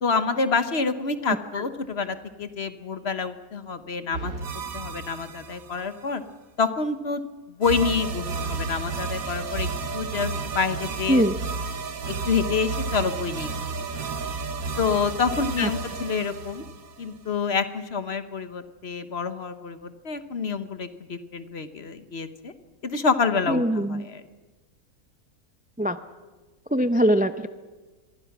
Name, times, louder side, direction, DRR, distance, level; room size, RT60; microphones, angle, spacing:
voice 1, 0.0-4.3 4.7-6.2 6.6-7.2 7.5-11.2 12.1-13.7 14.8-16.7 17.0-22.5 22.8-24.2, left 5 dB, 45° left, 11 dB, 1.3 m, -27 dB
sound 1, 4.1-6.0 7.6-17.4, right 4 dB, 65° right, 1.7 m, -32 dB
voice 2, 23.5-24.1 25.8-26.0 26.7-27.5, equal, 10° right, 10 dB, 0.4 m, -22 dB
25.5 x 22.5 x 6.0 m, 1.3 s
omnidirectional pair, 1.6 m